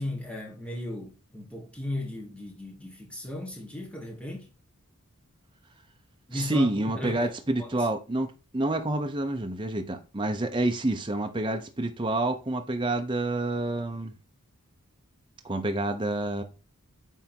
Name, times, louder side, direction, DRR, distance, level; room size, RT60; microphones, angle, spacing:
voice 1, 0.0-4.5 6.3-7.3 7.6-7.7, left 1 dB, 5° left, 1.7 m, -36 dB
voice 2, 6.3-14.1 15.4-16.4, right 2 dB, 20° right, 0.8 m, -28 dB
9.1 x 3.6 x 4.5 m
head